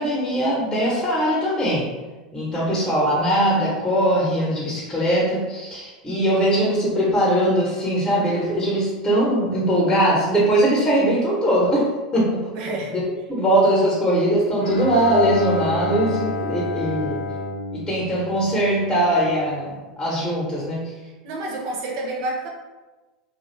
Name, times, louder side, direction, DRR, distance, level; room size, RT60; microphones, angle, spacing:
voice 1, 0.0-1.9 2.3-11.9 12.1-12.5 12.9-13.0 13.3-17.2 17.7-20.9, equal, 15° left, -5 dB, 0.8 m, -21 dB
voice 2, 12.6-12.9 21.0-22.5, right 2 dB, 60° right, 0 dB, 0.7 m, -29 dB
Bowed string instrument, 14.6-19.0, left 2 dB, 75° left, 0.6 m, -30 dB
2.5 x 2.3 x 3.1 m, 1.2 s
hypercardioid pair, 100°, 4 cm